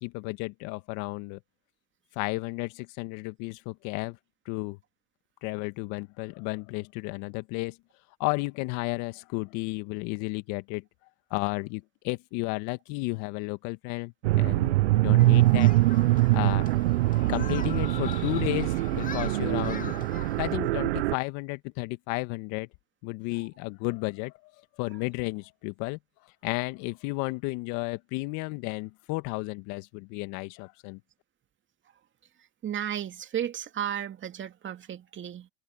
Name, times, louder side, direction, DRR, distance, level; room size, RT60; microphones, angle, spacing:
voice 1, 0.0-1.4 2.1-4.2 4.5-4.8 5.4-7.8 8.2-10.8 11.3-15.7 16.3-16.6 17.3-20.0 20.4-22.7 23.0-24.3 24.8-26.0 26.4-31.0, left 25 dB, 65° left, 1.8 m, -33 dB
sound 1, 14.2-21.2, right 19 dB, 80° right, 0.6 m, -23 dB
Human group actions, 15.2-20.6, left 6 dB, 25° left, 2.2 m, -42 dB
voice 2, 32.6-35.5, right 10 dB, 40° right, 2.5 m, -34 dB
hypercardioid pair, 80°, 31 cm